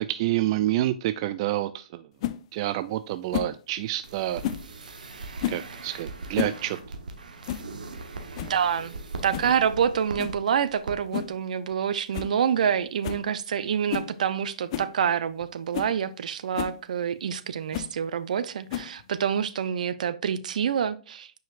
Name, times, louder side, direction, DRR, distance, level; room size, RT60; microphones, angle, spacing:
voice 1, 0.0-2.0 2.5-4.4 5.5-6.8, right 14 dB, 45° right, 12 dB, 0.4 m, -28 dB
sound 1, 2.2-2.4 3.3-3.6 4.4-4.7 5.4-5.7 6.2-6.6 6.9-7.0 7.5-7.7 8.0-8.1 8.3-8.6 9.3-9.5 10.2-10.4 11.1-11.4 11.7-11.8 12.1-12.3 12.6-12.7 13.0-13.3 13.9-14.1 14.7-14.9 15.4-15.5 15.7-15.9 16.5-16.8 17.7-17.9 18.7-19.1, left 12 dB, 45° left, 0.6 m, -31 dB
sound 2, 4.0-10.3 10.7-10.9 11.2-11.3, right 3 dB, 90° right, 1.3 m, -40 dB
voice 2, 8.4-9.0 9.2-21.3, right 8 dB, 70° right, 14 dB, 0.7 m, -27 dB
9.1 x 4.9 x 2.5 m, 0.37 s
hypercardioid pair, 135°, 4 cm